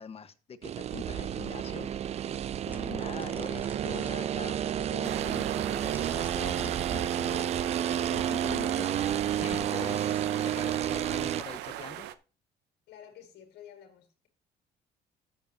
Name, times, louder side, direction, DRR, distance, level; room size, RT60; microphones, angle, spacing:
voice 1, 0.0-1.9 2.6-12.1, left 6 dB, 35° left, 1.2 m, -44 dB
sound 1, 0.6-11.4, right 10 dB, 40° right, 0.4 m, -31 dB
sound 2, 2.3-8.4 9.6-10.6, right 1 dB, 10° right, 1.3 m, -53 dB
sound 3, 5.0-12.1, right 13 dB, 90° right, 0.8 m, -38 dB
voice 2, 12.9-14.3, left 9 dB, 70° left, 2.2 m, -52 dB
13.5 x 7.1 x 2.8 m
cardioid pair, 110°, 17 cm